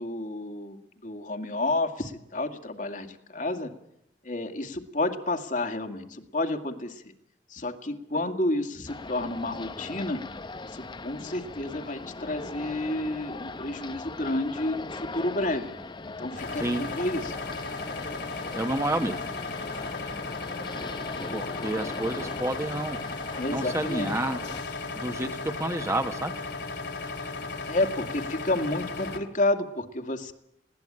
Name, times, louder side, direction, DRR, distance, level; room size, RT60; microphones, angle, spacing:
voice 1, 0.0-3.7 4.2-7.0 7.5-10.2 10.7-15.7 16.2-17.4 21.3-21.5 23.4-24.1 27.7-30.3, left 2 dB, 45° left, 5 dB, 2.2 m, -30 dB
sound 1, 8.9-24.6, left 3 dB, 25° left, 0.8 m, -40 dB
sound 2, 16.4-29.2, left 3 dB, 70° left, 3.2 m, -36 dB
voice 2, 18.5-19.2 21.3-23.0 23.5-24.5 24.9-26.3, right 1 dB, 15° right, 6 dB, 1.4 m, -29 dB
21.0 x 17.5 x 8.8 m, 0.78 s
head